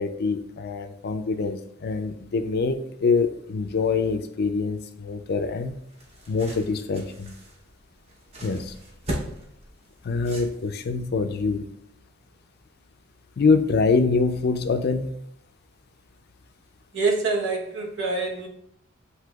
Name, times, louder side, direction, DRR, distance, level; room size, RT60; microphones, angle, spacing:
voice 1, 0.0-5.7 6.3-7.3 8.4-8.7 10.0-11.7 13.4-15.1, left 4 dB, 50° left, 8 dB, 0.4 m, -25 dB
sound 1, 5.6-11.0, right 1 dB, 30° right, 0.8 m, -38 dB
voice 2, 16.9-18.5, right 3 dB, 65° right, -1 dB, 1.0 m, -25 dB
7.5 x 2.8 x 2.3 m, 0.74 s
head